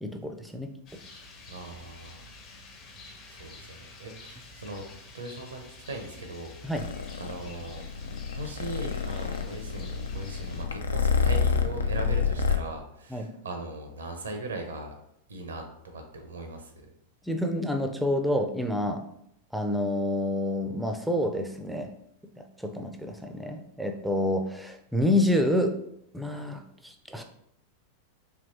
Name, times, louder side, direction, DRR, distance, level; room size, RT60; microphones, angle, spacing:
voice 1, 0.0-0.7 6.6-6.8 13.1-13.3 17.2-19.0 19.5-21.9 22.4-25.7 26.1-27.2, left 1 dB, ahead, 4 dB, 0.4 m, -28 dB
Rain, 0.9-10.6, left 2 dB, 35° left, 0.8 m, -48 dB
voice 2, 1.5-2.2 3.2-4.8 5.1-6.7 7.2-7.8 8.3-14.9 15.3-15.7 15.9-16.9, right 2 dB, 70° right, 5 dB, 0.6 m, -39 dB
Purr, 6.7-12.6, left 5 dB, 70° left, 0.4 m, -28 dB
4.5 x 2.9 x 2.6 m, 0.74 s
figure-of-eight pair, 90°, 0 cm